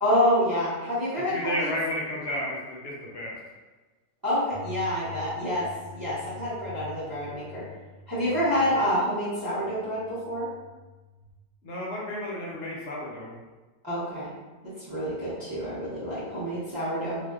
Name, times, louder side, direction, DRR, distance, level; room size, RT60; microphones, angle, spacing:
voice 1, 0.0-1.7 4.2-5.7 5.9-7.6 8.1-10.5 13.8-14.3 14.9-17.2, equal, 25° right, -10 dB, 0.6 m, -27 dB
voice 2, 1.3-3.4 11.6-13.3, left 1 dB, 70° left, -4 dB, 0.9 m, -32 dB
sound 1, 4.5-11.3, left 4 dB, 50° left, 0.6 m, -46 dB
2.5 x 2.2 x 2.3 m, 1.2 s
omnidirectional pair, 1.3 m